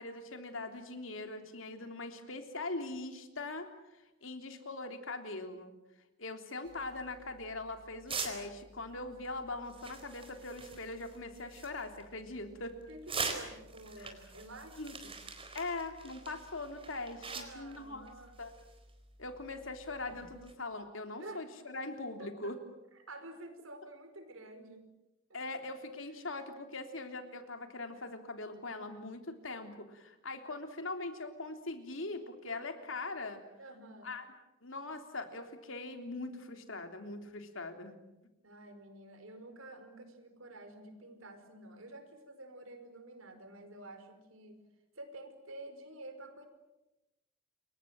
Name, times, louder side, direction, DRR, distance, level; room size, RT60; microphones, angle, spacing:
voice 1, 0.0-5.7 6.2-12.8 14.0-14.1 14.8-15.0 15.5-18.1 18.4-18.5 19.2-22.6 25.3-33.4 34.0-34.3 34.6-38.0, left 2 dB, 70° left, 6 dB, 3.4 m, -41 dB
sound 1, 6.6-20.5, right 4 dB, 25° right, 4.2 m, -45 dB
voice 2, 12.9-15.2 17.2-18.4 21.2-21.5 22.2-22.5 22.9-24.9 33.6-34.1 38.4-44.6 44.9-46.5, right 2 dB, 90° right, 8 dB, 5.0 m, -50 dB
28.5 x 23.5 x 7.8 m, 0.97 s
head